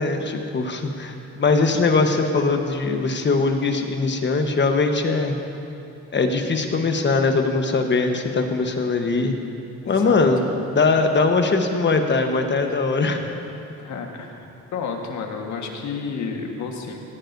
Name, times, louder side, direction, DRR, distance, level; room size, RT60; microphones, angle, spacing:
voice 1, 0.0-5.3 6.1-9.3 9.9-10.4 10.7-13.2, left 3 dB, 40° left, 4 dB, 1.2 m, -21 dB
voice 2, 9.8-10.3 13.8-17.0, left 5 dB, 70° left, 2 dB, 1.6 m, -31 dB
16.5 x 14.0 x 2.7 m, 2.7 s
cardioid pair, 90°, 30 cm